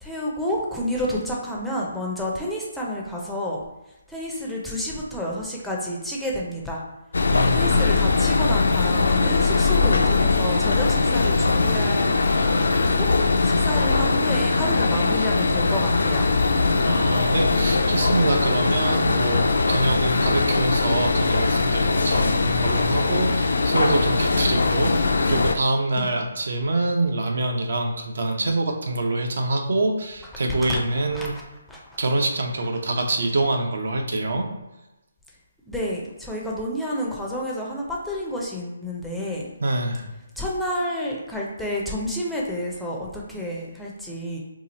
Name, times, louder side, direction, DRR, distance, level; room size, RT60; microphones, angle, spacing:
voice 1, 0.0-3.6 4.1-6.8 7.5-12.4 12.9-13.1 13.4-16.3 25.2-25.5 26.0-26.1 30.7-30.8 31.1-31.3 31.7-31.8 35.7-39.5 40.4-44.4, equal, ahead, -4 dB, 0.4 m, -29 dB
sound 1, 7.1-25.5, left 3 dB, 80° left, 0.4 m, -21 dB
voice 2, 7.3-7.9 16.8-31.3 32.0-34.5 39.6-40.1, right 2 dB, 65° right, 2 dB, 0.7 m, -25 dB
2.9 x 2.4 x 4.0 m, 0.98 s
hypercardioid pair, 160°, 0 cm